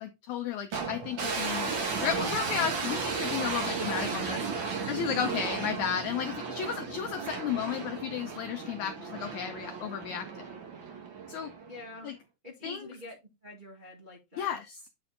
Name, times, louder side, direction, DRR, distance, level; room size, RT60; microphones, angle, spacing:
voice 1, 0.0-1.7 2.0-10.5 11.3-11.5 12.0-12.1 12.6-12.9 14.4-14.8, left 8 dB, 80° left, 1.7 m, -33 dB
sound 1, 0.7-11.9, right 5 dB, 50° right, 1.6 m, -34 dB
voice 2, 11.7-12.1 12.4-14.6, left 2 dB, 25° right, 1.2 m, -46 dB
8.8 x 4.3 x 3.8 m
omnidirectional pair, 4.2 m